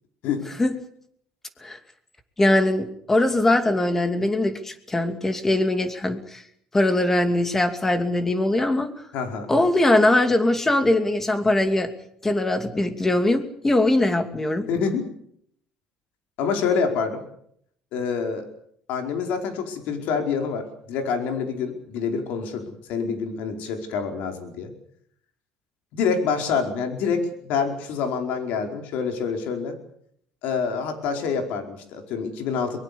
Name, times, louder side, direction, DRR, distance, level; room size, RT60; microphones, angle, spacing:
voice 1, 2.4-6.4 6.7-8.9 9.5-11.9 12.2-14.7, left 1 dB, 15° left, 8 dB, 2.6 m, -21 dB
voice 2, 9.1-9.5 14.7-15.0 16.4-17.2 17.9-18.4 18.9-24.7 25.9-29.8 30.4-32.8, left 5 dB, 75° left, 5 dB, 4.9 m, -26 dB
23.5 x 22.5 x 7.0 m, 0.68 s
cardioid pair, 140°, 3 cm